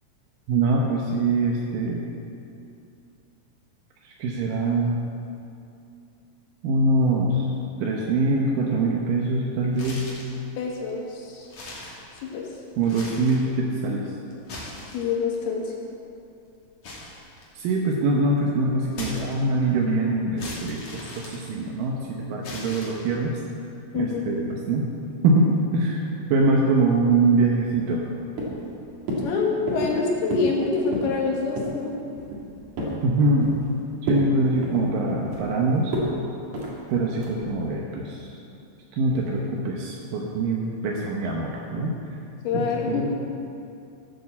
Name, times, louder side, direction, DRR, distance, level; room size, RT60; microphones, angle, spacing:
voice 1, 0.5-2.1 4.0-5.0 6.6-7.5 7.8-10.1 12.8-14.0 17.6-23.4 23.9-24.9 25.2-26.0 26.3-28.1 33.0-33.5 34.0-35.9 36.9-38.3 38.9-42.0 42.5-43.1, right 2 dB, 75° right, -1 dB, 2.1 m, -23 dB
sound 1, 9.7-10.4 10.9-11.0 11.4-12.5 12.8-13.5 14.3-15.4 16.8-17.9 18.9-19.7 20.4-21.9 22.4-23.3, left 2 dB, 45° left, 3.0 m, -39 dB
voice 2, 10.6-11.5 12.2-12.5 14.9-15.7 23.9-24.2 29.2-31.9 42.4-43.0, left 4 dB, 70° left, -1 dB, 3.0 m, -26 dB
sound 2, 27.5-28.1 28.4-28.7 29.1-29.3 29.7-30.0 30.3-30.6 30.8-31.2 31.6-31.8 32.2-33.0 33.4-33.7 34.0-34.3 34.6-35.5 35.9-36.1 36.5-36.7 37.2-37.5, equal, 50° right, 3.2 m, -30 dB
14.5 x 8.4 x 7.3 m, 2.6 s
omnidirectional pair, 5.3 m